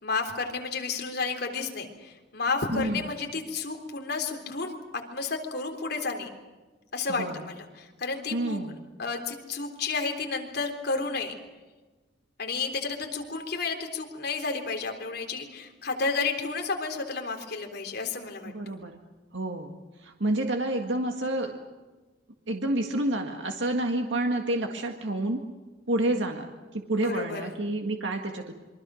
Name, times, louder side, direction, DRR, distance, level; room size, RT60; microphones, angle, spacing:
voice 1, 0.0-6.3 6.9-8.6 9.0-11.3 12.4-18.7 26.9-27.5, left 4 dB, 60° left, 3 dB, 3.7 m, -31 dB
voice 2, 2.7-3.1 7.1-7.4 8.3-8.7 18.5-19.0 19.3-21.6 22.5-25.4 25.9-28.5, right 1 dB, 85° right, 3 dB, 1.9 m, -29 dB
27.5 x 24.0 x 6.4 m, 1.3 s
head